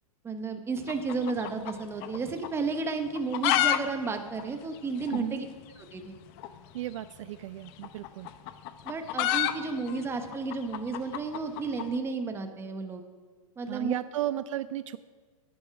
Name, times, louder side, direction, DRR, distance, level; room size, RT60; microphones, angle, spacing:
voice 1, 0.2-5.4 5.9-6.2 8.8-13.0 13.6-13.9, right 4 dB, 15° right, 6 dB, 1.1 m, -32 dB
sound 1, 0.8-2.2 2.4-2.5 3.1-3.8 4.0-4.1 4.4-4.5 5.1-5.2 6.4-6.5 7.7-11.9, left 13 dB, 40° left, 0.8 m, -29 dB
voice 2, 6.7-8.3 13.7-15.0, right 13 dB, 60° right, 14 dB, 0.4 m, -34 dB
11.0 x 10.5 x 5.9 m, 1.5 s
hypercardioid pair, 135°, 18 cm